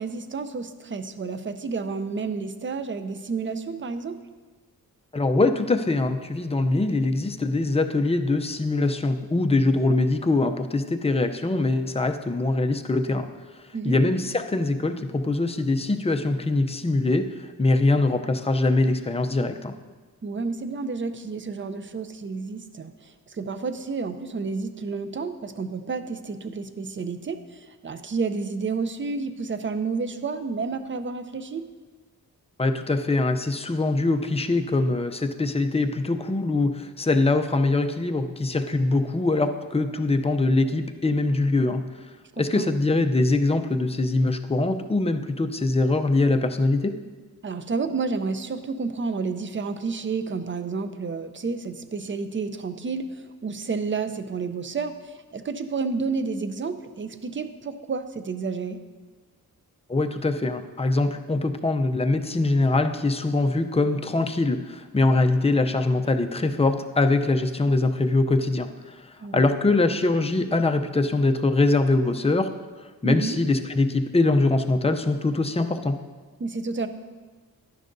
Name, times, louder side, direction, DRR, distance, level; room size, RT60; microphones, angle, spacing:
voice 1, 0.0-4.2 13.7-14.0 20.2-31.6 42.3-42.8 47.4-58.8 69.2-69.5 73.0-73.4 76.4-76.9, right 4 dB, 35° right, 10 dB, 0.5 m, -30 dB
voice 2, 5.1-13.3 13.8-17.3 17.6-19.7 32.6-41.9 42.4-46.9 59.9-72.5 73.0-76.0, left 2 dB, 15° left, 6 dB, 0.5 m, -23 dB
11.5 x 10.0 x 2.6 m, 1.4 s
wide cardioid pair, 105°, 36 cm